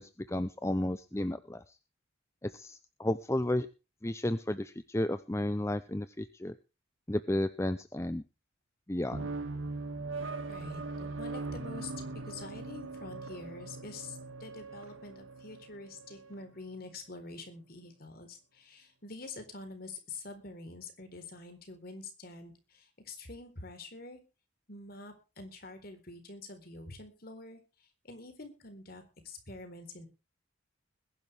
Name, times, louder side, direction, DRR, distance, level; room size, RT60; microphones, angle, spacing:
voice 1, 0.0-1.8 2.4-3.7 4.0-6.6 7.1-8.2 8.9-9.3, left 1 dB, 15° left, 11 dB, 0.6 m, -33 dB
sound 1, 9.1-16.4, right 3 dB, 80° right, 2.0 m, -40 dB
voice 2, 10.5-11.9 12.3-24.2 24.7-30.1, left 3 dB, 50° left, 7 dB, 4.1 m, -46 dB
21.0 x 11.0 x 3.5 m, 0.31 s
head